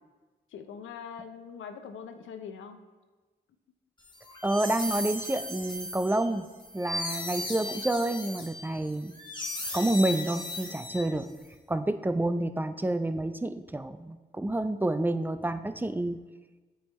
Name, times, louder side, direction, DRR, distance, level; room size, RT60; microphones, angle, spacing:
voice 1, 0.5-2.8, left 7 dB, 85° left, 8 dB, 0.5 m, -42 dB
sound 1, 4.1-11.4, left 1 dB, 25° left, 1.4 m, -37 dB
voice 2, 4.4-6.5 6.7-9.2 9.7-11.3 11.7-16.2, right 1 dB, 10° right, 11 dB, 0.3 m, -29 dB
8.7 x 3.5 x 3.2 m, 1.3 s
supercardioid pair, 45°, 20 cm